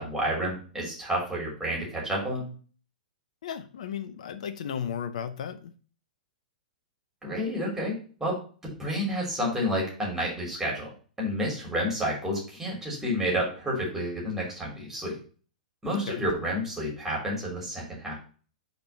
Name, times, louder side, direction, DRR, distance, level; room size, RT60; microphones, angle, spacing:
voice 1, 0.0-2.5 7.2-10.9 11.2-15.2 15.8-18.2, equal, 10° right, -3 dB, 3.3 m, -30 dB
voice 2, 3.4-5.7 15.9-16.2, left 8 dB, 55° left, 9 dB, 0.7 m, -35 dB
5.2 x 4.6 x 5.3 m, 0.39 s
figure-of-eight pair, 105°, 4 cm